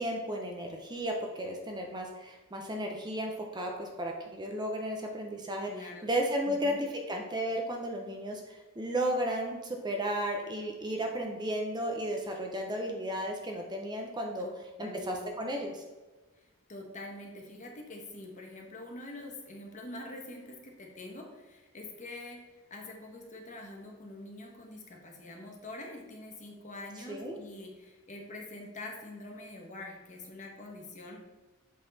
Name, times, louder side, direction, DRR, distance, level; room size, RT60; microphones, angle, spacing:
voice 1, 0.0-14.5 14.8-15.8 27.1-27.4, right 1 dB, 20° right, 2 dB, 0.7 m, -34 dB
voice 2, 5.7-6.1 6.5-6.9 14.4-14.5 14.8-15.5 16.7-22.4 22.7-31.2, left 2 dB, 35° left, 1 dB, 1.2 m, -45 dB
8.0 x 4.0 x 4.0 m, 1.2 s
head